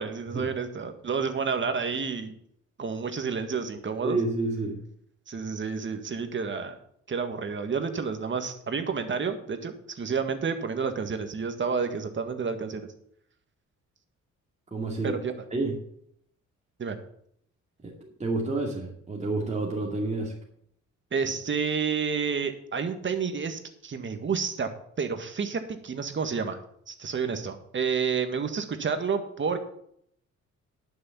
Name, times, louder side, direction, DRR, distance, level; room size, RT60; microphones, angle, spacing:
voice 1, 0.0-2.3 2.8-4.2 5.3-6.7 7.1-12.9 15.0-15.4 16.8-17.0 21.1-24.7 25.0-26.6 26.9-29.6, right 5 dB, 40° right, 7 dB, 1.8 m, -30 dB
voice 2, 4.0-4.8 14.7-15.1 15.5-15.7 17.8-20.3, right 2 dB, 25° right, -2 dB, 2.4 m, -29 dB
11.0 x 6.6 x 7.1 m, 0.69 s
cardioid pair, 90°, 30 cm